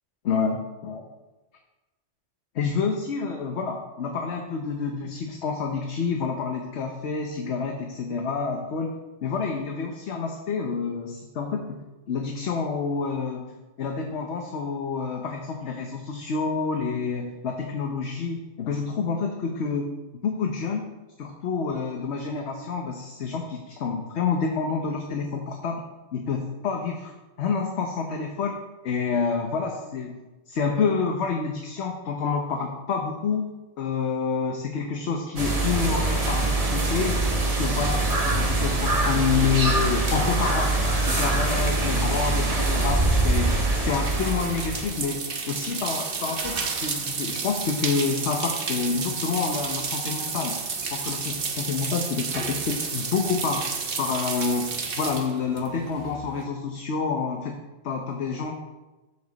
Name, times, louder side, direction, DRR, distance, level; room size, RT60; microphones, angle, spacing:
voice 1, 0.2-1.0 2.5-8.9 9.2-13.5 13.8-19.9 20.2-20.8 21.2-25.8 26.1-27.1 27.4-28.5 28.8-30.2 30.5-33.5 33.8-37.2 37.4-43.5 43.8-50.6 50.9-53.7 54.0-57.6 57.8-58.5, left 5 dB, 65° left, 2 dB, 1.1 m, -28 dB
sound 1, 35.4-45.0, right 2 dB, 30° right, 1.3 m, -24 dB
sound 2, 43.2-56.4, right 5 dB, 50° right, 1.1 m, -31 dB
13.5 x 5.1 x 4.0 m, 1.1 s
omnidirectional pair, 1.3 m